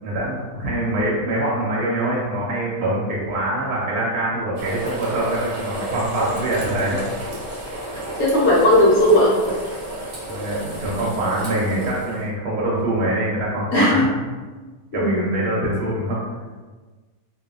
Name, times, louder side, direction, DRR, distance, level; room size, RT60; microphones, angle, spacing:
voice 1, 0.0-7.0 10.3-14.1 14.9-16.2, right 1 dB, 85° right, -6 dB, 1.1 m, -24 dB
sound 1, 4.5-12.2, right 1 dB, 50° right, 0.9 m, -31 dB
voice 2, 8.2-9.3 13.7-14.1 14.9-15.3, left 1 dB, 65° left, -5 dB, 1.1 m, -16 dB
2.7 x 2.4 x 2.3 m, 1.3 s
omnidirectional pair, 1.6 m